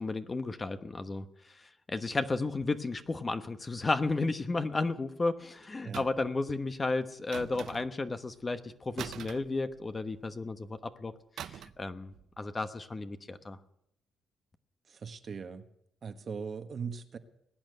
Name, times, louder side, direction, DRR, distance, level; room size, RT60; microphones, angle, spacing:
voice 1, 0.0-11.1 11.4-13.6, left 3 dB, 25° left, 9 dB, 1.1 m, -33 dB
sound 1, 5.9-6.4 7.3-8.1 9.0-10.2 11.4-11.9 12.1-12.4, right 10 dB, 70° right, 0.6 m, -43 dB
voice 2, 14.9-15.7 16.0-17.2, right 6 dB, 45° right, 7 dB, 1.3 m, -40 dB
20.5 x 8.9 x 7.9 m, 0.77 s
cardioid pair, 90°, 0 cm